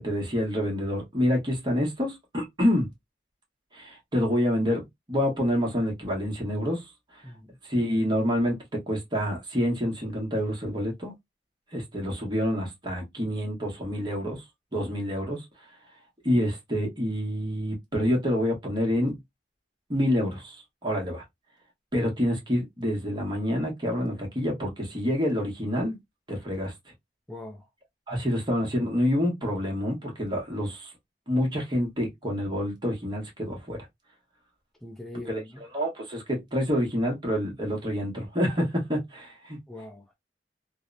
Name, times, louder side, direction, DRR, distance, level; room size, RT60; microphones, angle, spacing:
voice 1, 0.0-2.9 3.7-6.8 7.7-11.1 11.7-14.4 14.7-15.4 16.2-19.2 19.9-20.6 20.8-21.2 21.9-26.0 26.3-26.7 28.1-30.9 31.3-33.8 35.3-39.6, equal, 25° right, 0.9 m, -27 dB
voice 2, 7.2-7.6 14.7-14.9 27.3-27.6 34.8-35.6 39.7-40.1, left 1 dB, ahead, 0.5 m, -42 dB
2.8 x 2.0 x 2.4 m
head